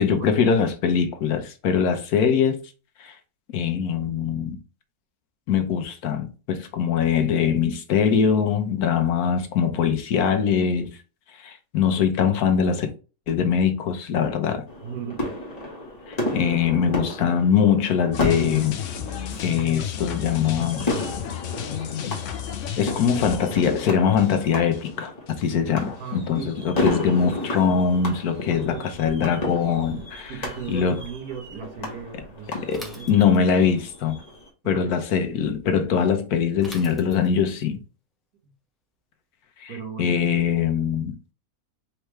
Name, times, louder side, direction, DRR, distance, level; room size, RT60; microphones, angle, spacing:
voice 1, 0.0-2.6 3.0-3.1 3.5-4.6 5.5-10.9 11.4-12.9 13.3-14.7 16.1-18.8 19.4-20.9 22.8-30.3 30.7-31.0 32.6-34.2 34.6-37.8 39.6-39.7 40.0-41.1, left 7 dB, 90° left, 1.3 m, -22 dB
sound 1, 14.7-34.5, left 2 dB, 30° left, 1.3 m, -33 dB
voice 2, 14.8-15.3 26.0-26.6 28.5-28.9 30.3-33.1 34.6-35.0 38.4-38.5 39.7-40.3, right 7 dB, 90° right, 1.6 m, -37 dB
sound 2, 18.1-25.0 25.3-25.4, left 9 dB, 65° left, 0.9 m, -33 dB
Bicycle / Mechanisms, 32.7-33.7 36.6-37.5, equal, ahead, 0.5 m, -43 dB
4.6 x 3.3 x 3.1 m
omnidirectional pair, 1.6 m